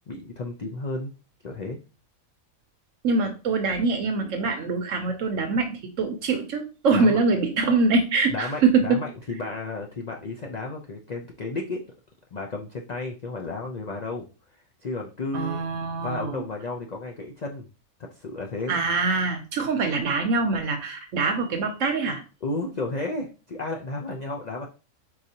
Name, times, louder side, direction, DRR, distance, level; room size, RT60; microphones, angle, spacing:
voice 1, 0.1-1.1 1.4-1.8 6.9-7.2 8.3-11.8 12.3-14.3 14.8-15.6 16.0-17.7 18.0-18.8 22.4-24.7, left 2 dB, 75° left, 1 dB, 0.3 m, -33 dB
voice 2, 3.0-9.0 15.3-16.4 18.7-22.2, right 4 dB, 65° right, 6 dB, 0.9 m, -24 dB
4.7 x 4.1 x 2.8 m, 0.34 s
omnidirectional pair, 1.5 m